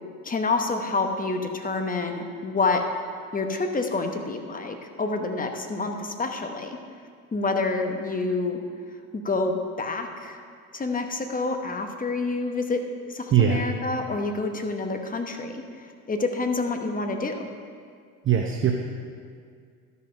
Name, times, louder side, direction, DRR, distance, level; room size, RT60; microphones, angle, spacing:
voice 1, 0.2-2.8 3.3-6.8 7.3-8.6 9.1-10.4 10.7-12.8 13.1-17.5, left 3 dB, 20° left, 5 dB, 1.0 m, -28 dB
voice 2, 13.3-13.6 18.2-18.7, right 9 dB, 30° right, 2 dB, 0.7 m, -20 dB
12.5 x 5.6 x 5.2 m, 2.1 s
supercardioid pair, 85°, 42 cm